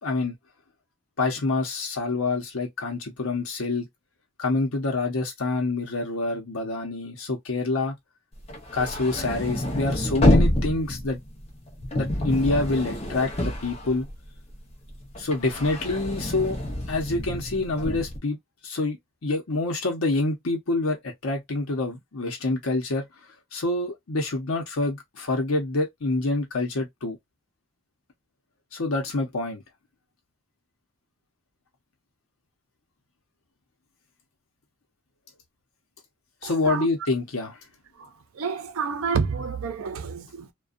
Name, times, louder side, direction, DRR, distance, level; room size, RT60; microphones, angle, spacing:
voice 1, 0.0-0.3 1.2-3.9 4.4-8.0 8.7-11.2 11.9-14.1 15.2-16.6 16.9-18.4 18.6-23.1 23.5-27.2 28.7-29.6 36.4-37.5, left 2 dB, 75° left, 0.8 m, -27 dB
sound 1, 8.4-14.5 14.9-18.2, left 1 dB, 30° left, 0.6 m, -27 dB
voice 2, 36.4-36.9 37.9-40.5, right 5 dB, 75° right, 0.5 m, -29 dB
2.5 x 2.2 x 2.3 m
head